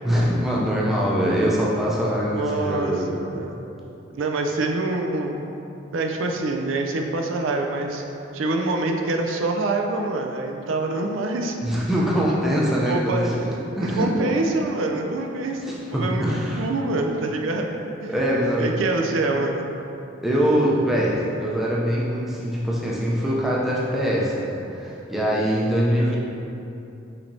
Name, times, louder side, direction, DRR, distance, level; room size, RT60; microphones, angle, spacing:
voice 1, 0.0-3.1 11.6-13.4 13.7-14.1 15.6-16.7 18.1-18.7 20.2-26.2, equal, ahead, -6 dB, 0.5 m, -23 dB
voice 2, 2.3-3.6 4.1-5.4 5.9-8.0 8.3-11.6 12.8-13.3 13.8-18.2 18.6-19.6 25.9-26.2, right 2 dB, 80° right, 3 dB, 0.4 m, -26 dB
5.7 x 3.2 x 2.7 m, 2.8 s
head